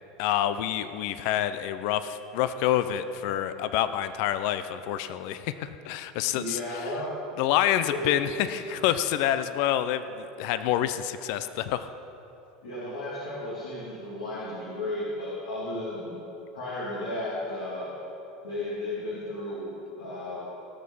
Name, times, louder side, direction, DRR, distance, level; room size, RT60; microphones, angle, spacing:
voice 1, 0.2-6.8 7.4-11.9, left 11 dB, 65° left, 12 dB, 0.5 m, -27 dB
voice 2, 6.3-7.1 7.9-8.1 12.6-16.2 16.5-17.9 18.4-20.4, left 1 dB, 90° left, -9 dB, 2.6 m, -34 dB
18.0 x 6.5 x 5.5 m, 3.0 s
hypercardioid pair, 95°, 2 cm